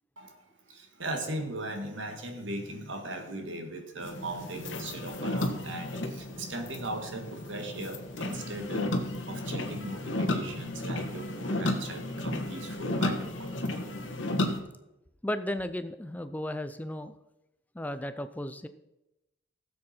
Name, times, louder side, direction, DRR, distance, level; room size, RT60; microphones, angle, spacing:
voice 1, 0.7-13.5, right 1 dB, 70° right, 4 dB, 1.9 m, -38 dB
sound 1, 4.0-14.6, left 1 dB, 70° left, 1.5 m, -33 dB
voice 2, 15.2-17.2 17.7-18.7, left 1 dB, 10° left, 11 dB, 0.4 m, -34 dB
16.5 x 7.6 x 4.4 m, 0.91 s
head